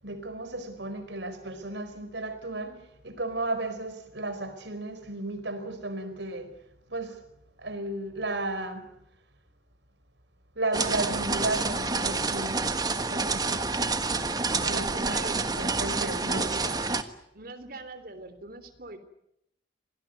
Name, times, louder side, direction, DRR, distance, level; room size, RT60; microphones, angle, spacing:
voice 1, 0.0-6.5 6.9-7.2 7.6-8.8 10.6-13.7 14.5-15.2 15.6-16.5, right 2 dB, 80° right, 10 dB, 4.7 m, -34 dB
sound 1, 10.7-17.0, right 3 dB, 20° right, 1.5 m, -28 dB
voice 2, 15.1-15.5 16.3-16.9 17.3-19.0, right 2 dB, 55° right, 10 dB, 3.4 m, -41 dB
27.5 x 19.0 x 9.4 m, 0.78 s
head